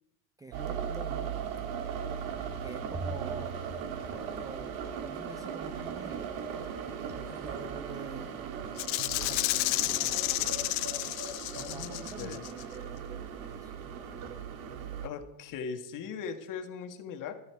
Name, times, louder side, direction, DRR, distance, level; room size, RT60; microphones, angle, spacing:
voice 1, 0.4-1.4 2.6-3.6 4.3-6.4 7.0-8.5 9.2-10.6 11.5-14.5, right 3 dB, 10° right, 9 dB, 0.4 m, -47 dB
sound 1, 0.5-15.1, right 7 dB, 55° right, 1.9 m, -38 dB
sound 2, 2.3-2.4 2.9-3.7 4.0-4.6 5.4-5.5 5.7-6.1 6.6-12.2, right 3 dB, 30° right, 2.0 m, -44 dB
Rattle (instrument), 8.8-12.6, left 22 dB, 65° left, 0.7 m, -31 dB
voice 2, 11.6-12.5 15.0-17.4, left 6 dB, 45° left, 7 dB, 1.7 m, -39 dB
16.0 x 13.5 x 4.7 m, 0.88 s
supercardioid pair, 130°, 44 cm